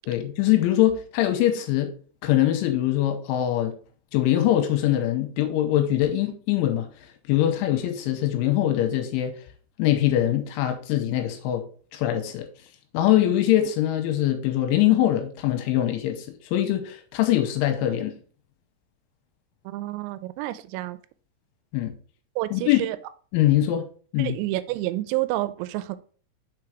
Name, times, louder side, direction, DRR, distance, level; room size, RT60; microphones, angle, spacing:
voice 1, 0.1-1.9 2.2-3.7 4.1-6.9 7.3-9.4 9.8-11.6 11.9-12.5 12.9-18.1 21.7-21.9 22.5-22.8 23.3-23.9 24.1-24.4, left 13 dB, 85° left, 3.1 m, -23 dB
voice 2, 19.7-21.0 22.4-23.0 24.2-26.0, right 17 dB, 90° right, 3.3 m, -29 dB
6.8 x 4.9 x 4.6 m
omnidirectional pair, 5.9 m